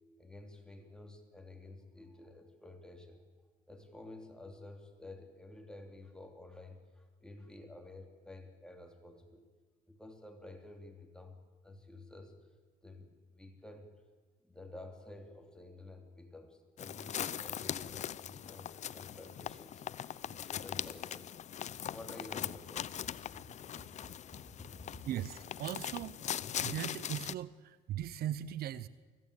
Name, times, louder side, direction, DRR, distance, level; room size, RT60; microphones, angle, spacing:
voice 1, 0.2-3.2 3.7-9.4 9.9-11.4 11.6-12.3 12.8-13.9 14.4-19.8 20.2-21.4 21.8-23.1 23.4-25.0, left 2 dB, 5° left, 3 dB, 3.4 m, -52 dB
sound 1, 16.8-27.3, left 10 dB, 45° left, 0.6 m, -41 dB
voice 2, 25.1-26.2 26.6-28.9, right 11 dB, 65° right, 16 dB, 0.8 m, -39 dB
24.5 x 15.5 x 8.5 m, 1.4 s
cardioid pair, 110°, 17 cm